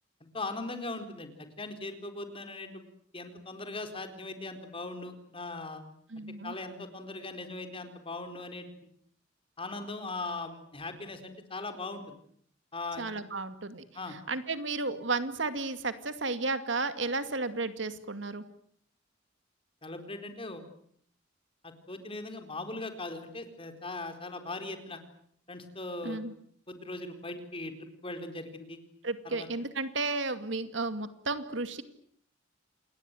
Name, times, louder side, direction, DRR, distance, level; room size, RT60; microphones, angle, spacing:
voice 1, 0.3-2.8 3.1-5.8 6.4-8.7 9.6-12.2 12.7-13.2 13.9-14.2 19.8-20.6 21.6-25.0 25.5-26.2 26.7-28.8 29.2-29.5, left 2 dB, 30° left, 7 dB, 4.3 m, -39 dB
voice 2, 6.1-6.5 13.0-13.8 14.1-18.4 26.0-26.3 29.0-31.8, right 3 dB, 70° right, 10 dB, 2.3 m, -33 dB
28.0 x 21.0 x 9.3 m, 0.65 s
head